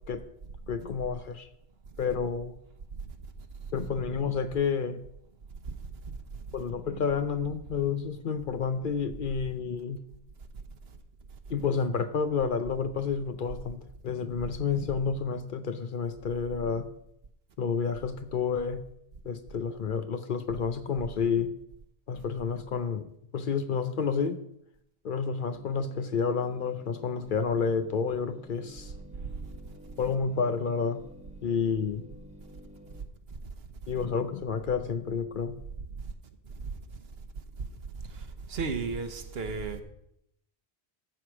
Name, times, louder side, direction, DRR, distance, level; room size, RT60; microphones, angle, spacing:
voice 1, 0.7-1.5 2.0-2.6 3.7-5.0 6.5-10.0 11.5-16.9 17.6-18.8 19.2-21.5 22.1-24.4 25.0-28.9 30.0-31.0 31.4-32.1 33.9-35.6, left 6 dB, 55° left, 0.7 m, -30 dB
sound 1, 25.5-33.0, left 1 dB, 5° right, 1.2 m, -51 dB
voice 2, 38.5-39.8, right 4 dB, 65° right, 1.2 m, -33 dB
14.5 x 4.9 x 6.0 m
omnidirectional pair, 1.1 m